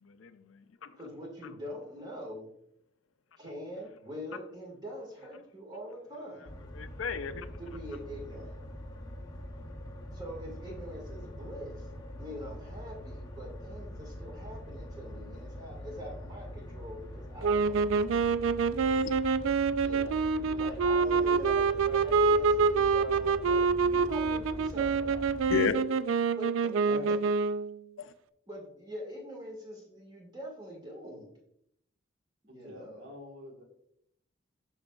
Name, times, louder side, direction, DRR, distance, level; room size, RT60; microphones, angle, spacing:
voice 1, 0.0-1.0 6.7-7.6 18.9-19.1 25.5-25.7 28.0-28.1, left 6 dB, 80° left, 11 dB, 0.5 m, -33 dB
voice 2, 1.0-2.5 3.4-6.5 7.6-8.6 10.1-11.9 12.2-18.1 19.8-25.3 26.3-26.5 26.8-26.9 28.5-31.3 32.4-33.1, equal, 20° right, -1 dB, 1.8 m, -44 dB
sound 1, 6.5-25.6, equal, 20° left, 0.7 m, -44 dB
sound 2, 17.4-27.8, right 5 dB, 75° right, 0.3 m, -26 dB
voice 3, 26.8-27.1 32.5-33.6, equal, 55° right, 1 dB, 1.5 m, -44 dB
8.8 x 6.2 x 2.3 m, 0.74 s
head